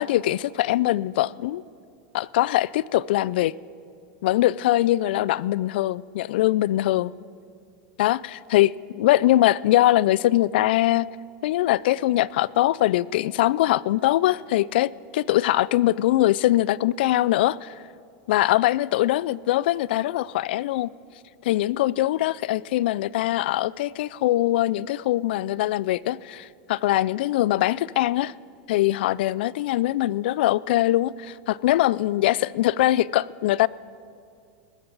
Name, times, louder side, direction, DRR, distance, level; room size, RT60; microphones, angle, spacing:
voice 1, 0.0-1.6 2.1-3.5 4.2-7.1 8.0-11.1 11.4-17.7 18.3-20.9 21.4-28.3 28.7-33.7, left 15 dB, 70° left, 0.3 m, -22 dB
21.0 x 13.5 x 4.0 m
supercardioid pair, 145°, 6 cm